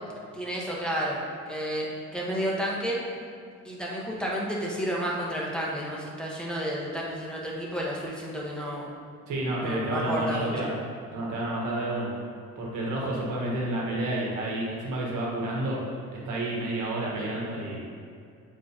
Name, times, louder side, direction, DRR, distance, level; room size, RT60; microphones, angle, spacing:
voice 1, 0.3-1.2 1.5-1.9 2.1-3.0 3.6-8.9 9.6-10.7 17.2-17.3, equal, 5° left, -5 dB, 1.3 m, -31 dB
voice 2, 9.3-10.7 11.1-12.1 12.6-15.8 16.1-17.9, right 1 dB, 80° right, -3 dB, 1.6 m, -30 dB
9.2 x 4.7 x 3.0 m, 2.3 s
cardioid pair, 90°, 30 cm